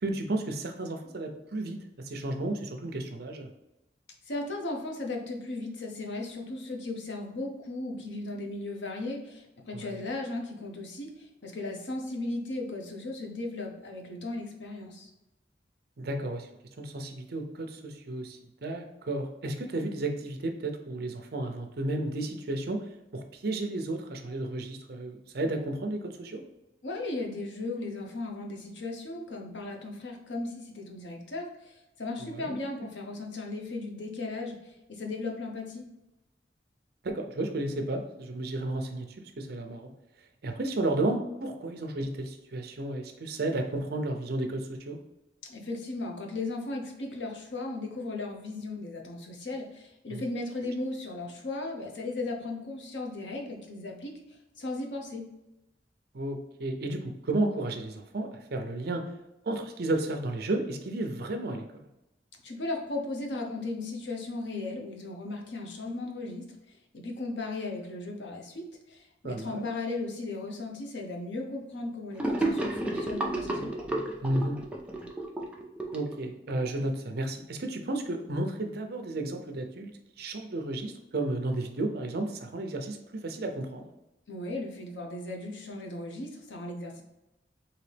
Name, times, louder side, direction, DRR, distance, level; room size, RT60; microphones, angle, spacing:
voice 1, 0.0-3.5 9.7-10.0 16.0-16.5 16.8-22.8 23.1-26.4 32.2-32.6 37.0-39.9 40.4-45.0 50.1-50.3 56.1-59.1 59.4-61.9 69.2-69.6 74.2-74.6 75.9-79.9 80.2-83.9, right 2 dB, 60° right, 5 dB, 0.6 m, -33 dB
voice 2, 4.3-15.1 26.8-35.9 45.5-55.2 62.4-73.7 84.3-87.0, left 2 dB, 85° left, 1 dB, 0.8 m, -36 dB
Gurgling / Sink (filling or washing), 72.2-76.7, right 1 dB, 5° right, 0.5 m, -31 dB
3.9 x 2.8 x 3.3 m, 0.94 s
head